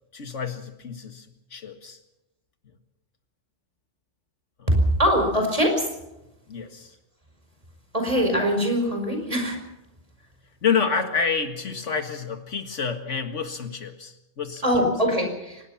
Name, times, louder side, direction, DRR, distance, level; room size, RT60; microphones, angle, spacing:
voice 1, 0.1-2.0 6.5-6.9 10.6-14.6, left 6 dB, 80° left, 7 dB, 2.1 m, -28 dB
voice 2, 4.7-5.9 7.9-9.6 14.6-15.6, equal, 30° right, 4 dB, 5.4 m, -22 dB
24.0 x 20.0 x 5.8 m, 0.94 s
omnidirectional pair, 1.2 m